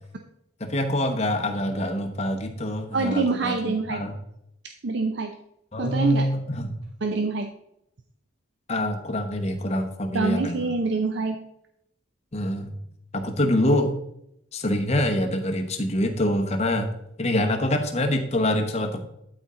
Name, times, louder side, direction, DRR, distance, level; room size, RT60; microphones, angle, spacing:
voice 1, 0.6-4.2 5.7-6.8 8.7-10.7 12.3-12.8 13.1-14.0 14.5-16.9 17.2-19.0, left 1 dB, 35° left, 4 dB, 1.0 m, -25 dB
voice 2, 2.9-4.0 4.8-5.3 5.8-6.3 7.0-7.5 10.1-11.4, right 3 dB, 60° right, 5 dB, 0.6 m, -25 dB
12.0 x 4.3 x 3.8 m, 0.77 s
head